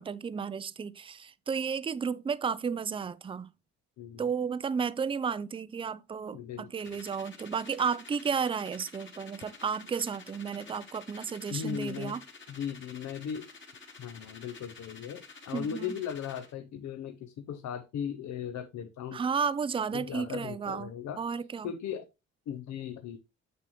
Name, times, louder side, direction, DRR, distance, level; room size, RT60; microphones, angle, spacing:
voice 1, 0.0-3.5 4.2-12.2 15.5-16.0 19.1-21.7, right 6 dB, 20° right, 0.4 m, -33 dB
voice 2, 6.3-7.0 11.5-12.2 12.5-13.5 14.0-19.2 19.9-21.2 21.6-22.0 22.5-23.2, left 8 dB, 65° left, 0.7 m, -37 dB
sound 1, 6.8-16.5, left 4 dB, 40° left, 1.7 m, -51 dB
6.7 x 6.3 x 3.0 m
cardioid pair, 90°, 30 cm